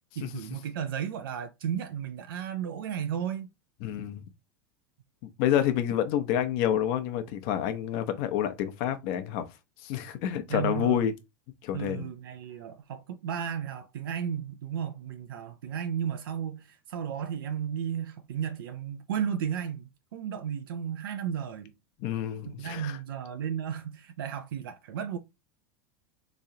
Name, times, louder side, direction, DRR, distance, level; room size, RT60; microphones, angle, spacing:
voice 1, 0.2-3.5 10.5-11.0 11.7-21.7 22.4-25.2, right 8 dB, 85° right, 0.5 m, -34 dB
voice 2, 3.8-4.2 5.4-9.5 9.8-11.1 11.6-12.1 22.0-23.0, left 10 dB, 55° left, 0.8 m, -28 dB
3.7 x 3.1 x 2.7 m
hypercardioid pair, 110°, 11 cm